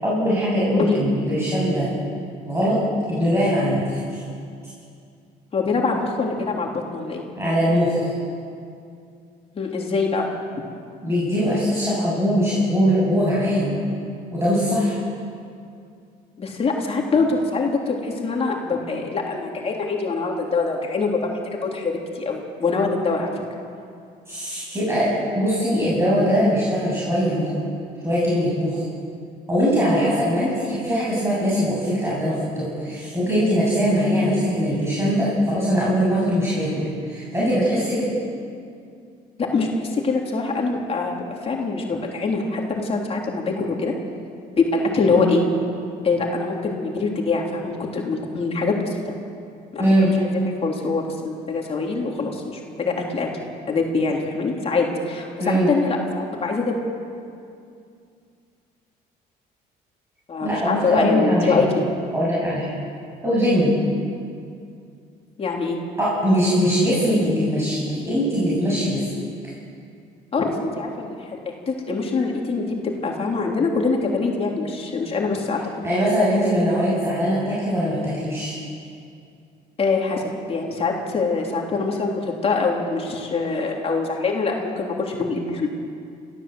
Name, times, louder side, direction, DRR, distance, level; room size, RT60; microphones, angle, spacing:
voice 1, 0.0-1.9 2.5-2.8 3.1-4.2 7.4-8.1 11.0-13.8 14.3-15.0 24.3-27.6 28.0-28.8 29.5-38.1 49.8-50.1 55.4-55.7 60.4-61.7 62.1-62.7 63.2-63.7 66.0-69.0 75.8-78.5, equal, 15° right, -8 dB, 7.5 m, -21 dB
voice 2, 5.5-7.2 9.5-10.3 16.4-23.3 39.4-43.9 44.6-45.5 46.0-48.9 49.7-49.8 50.2-53.3 53.7-56.8 60.3-61.9 65.4-65.8 70.3-71.3 71.7-72.8 73.0-75.6 79.8-80.2 80.5-85.9, left 4 dB, 35° left, -1 dB, 3.3 m, -24 dB
26.5 x 15.0 x 7.9 m, 2.4 s
cardioid pair, 110°, 17 cm